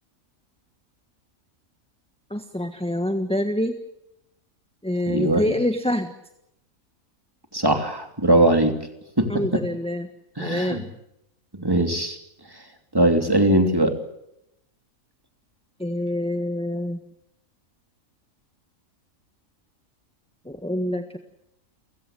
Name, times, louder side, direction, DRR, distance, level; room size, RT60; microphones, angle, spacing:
voice 1, 2.3-3.7 4.8-6.1 9.3-10.1 10.4-10.9 15.8-17.0 20.4-21.2, left 1 dB, 5° left, 7 dB, 1.4 m, -26 dB
voice 2, 5.1-5.4 7.5-8.7 9.2-9.6 10.4-10.8 11.5-12.2 12.9-13.9, right 1 dB, 15° right, 5 dB, 3.0 m, -20 dB
29.5 x 16.0 x 8.9 m, 0.81 s
omnidirectional pair, 1.4 m